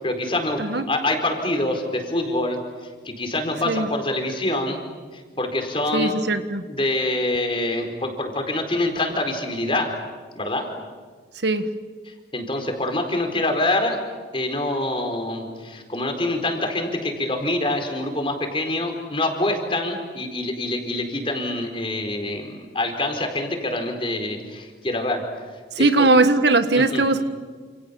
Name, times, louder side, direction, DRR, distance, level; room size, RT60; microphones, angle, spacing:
voice 1, 0.0-2.6 3.0-4.8 5.1-6.1 6.7-9.9 10.3-10.7 12.1-14.0 14.3-25.2 25.8-26.1 26.7-27.0, left 1 dB, 30° left, 4 dB, 4.4 m, -25 dB
voice 2, 5.9-6.6 11.4-11.6 25.7-27.2, right 2 dB, 65° right, 10 dB, 1.7 m, -19 dB
29.5 x 28.5 x 7.1 m, 1.5 s
head